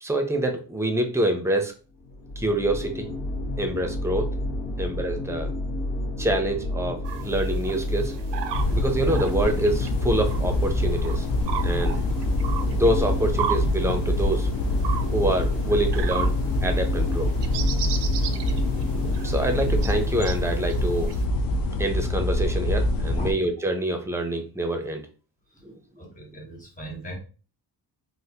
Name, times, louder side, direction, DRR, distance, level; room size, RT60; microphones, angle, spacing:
voice 1, 0.0-1.7 2.4-3.1 3.6-4.3 4.8-5.5 6.2-8.1 8.7-11.3 11.6-12.0 12.7-14.5 15.1-16.3 16.6-17.3 19.0-21.2 21.8-25.0 25.6-25.7, right 1 dB, 5° right, 5 dB, 0.5 m, -26 dB
sound 1, 2.0-20.0, left 1 dB, 80° left, 1.0 m, -30 dB
sound 2, 7.0-21.2, right 9 dB, 90° right, 0.6 m, -37 dB
sound 3, 8.5-23.3, left 1 dB, 55° left, 0.5 m, -26 dB
voice 2, 26.0-27.2, right 1 dB, 20° left, -1 dB, 1.2 m, -38 dB
3.6 x 2.5 x 2.7 m, 0.36 s
wide cardioid pair, 135°, 41 cm